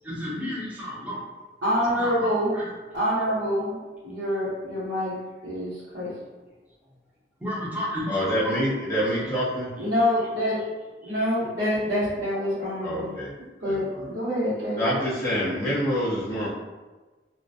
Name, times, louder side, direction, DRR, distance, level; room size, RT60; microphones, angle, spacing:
voice 1, 0.0-1.2 1.9-2.7 7.4-8.5 9.0-9.3 11.0-11.1, equal, 10° right, -7 dB, 0.6 m, -33 dB
voice 2, 1.6-2.6 2.9-3.8 4.0-6.2 9.8-10.7 11.0-13.1 13.6-14.9, equal, 85° right, -14 dB, 1.0 m, -26 dB
voice 3, 8.1-9.7 12.8-13.3 13.6-14.0 14.8-16.5, equal, 15° left, -8 dB, 0.8 m, -26 dB
2.3 x 2.1 x 2.7 m, 1.2 s
head